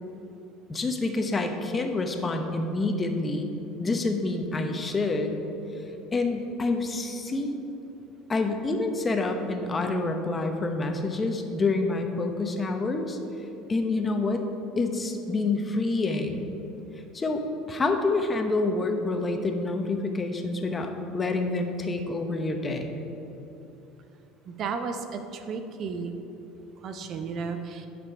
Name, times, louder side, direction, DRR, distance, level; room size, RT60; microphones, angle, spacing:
voice 1, 0.7-3.5 3.8-5.4 6.1-7.6 8.3-13.2 13.7-14.4 14.8-16.6 17.1-23.0, left 3 dB, 25° left, 5 dB, 0.9 m, -27 dB
voice 2, 24.5-26.1 26.8-27.9, right 5 dB, 50° right, 7 dB, 0.7 m, -33 dB
11.0 x 5.3 x 4.7 m, 3.0 s
supercardioid pair, 85°, 0 cm